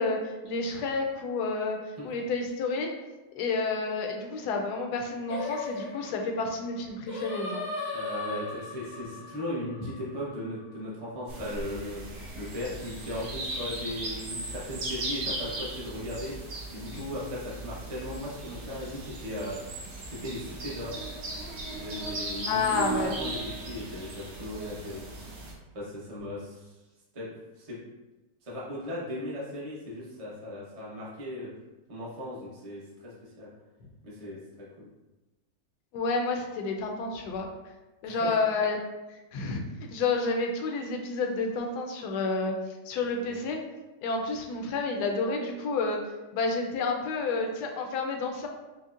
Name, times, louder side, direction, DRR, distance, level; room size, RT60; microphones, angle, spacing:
voice 1, 0.0-1.8 2.0-2.9 3.3-7.6 16.9-17.0 22.5-23.1 35.9-37.5 38.0-38.8 39.1-39.6 39.9-42.5 42.9-43.6 44.0-46.0 46.3-48.5, left 3 dB, 75° left, 3 dB, 1.1 m, -30 dB
Singing, 5.3-10.6, left 3 dB, 50° left, 0.4 m, -37 dB
voice 2, 7.9-12.1 12.3-16.3 16.7-19.6 20.1-21.0 21.7-25.0 25.7-26.8 27.1-27.3 27.6-27.8 28.4-31.5 31.9-33.5 34.0-34.9 38.0-38.4 43.2-43.4, left 1 dB, 30° right, -7 dB, 0.6 m, -37 dB
sound 1, 11.3-25.5, right 2 dB, 70° right, 1.3 m, -37 dB
5.2 x 2.1 x 2.4 m, 1.1 s
omnidirectional pair, 1.9 m